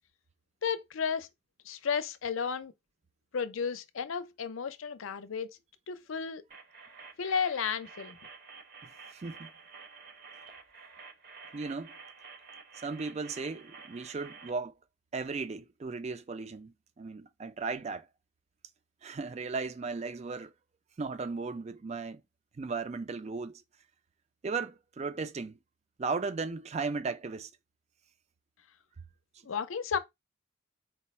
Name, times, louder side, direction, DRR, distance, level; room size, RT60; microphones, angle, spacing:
voice 1, 0.6-1.3 1.7-2.7 3.3-5.6 5.9-6.4 7.2-8.2 29.4-30.0, left 6 dB, 75° left, 0.5 m, -33 dB
sound 1, 6.5-14.5, right 5 dB, 50° right, 0.7 m, -50 dB
voice 2, 8.8-9.5 11.5-11.9 12.7-14.7 15.1-18.1 19.0-20.5 21.0-22.2 22.5-23.6 24.4-25.6 26.0-27.5, right 4 dB, 30° right, 0.4 m, -36 dB
4.6 x 2.0 x 4.2 m
head